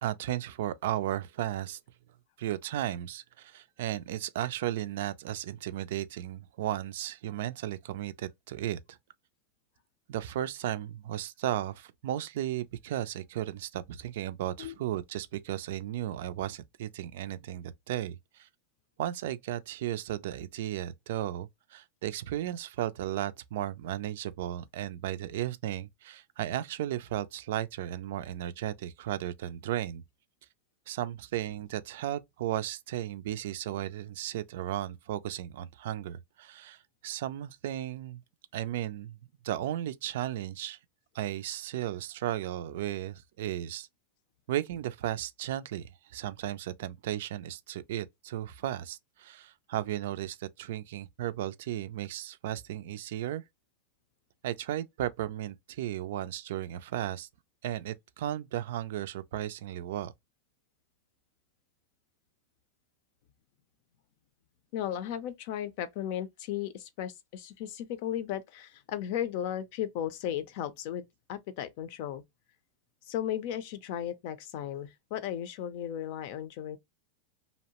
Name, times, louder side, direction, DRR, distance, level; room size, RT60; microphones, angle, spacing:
voice 1, 0.0-1.8 2.4-9.0 10.1-18.5 19.0-30.0 30.9-38.2 38.5-39.2 39.4-40.8 41.1-43.9 44.5-53.4 54.4-57.3 57.6-60.1, right 12 dB, 70° right, 0.3 m, -35 dB
voice 2, 64.7-72.2 73.1-76.8, left 10 dB, 55° left, 0.5 m, -35 dB
2.7 x 2.0 x 2.8 m
supercardioid pair, 135°, 0 cm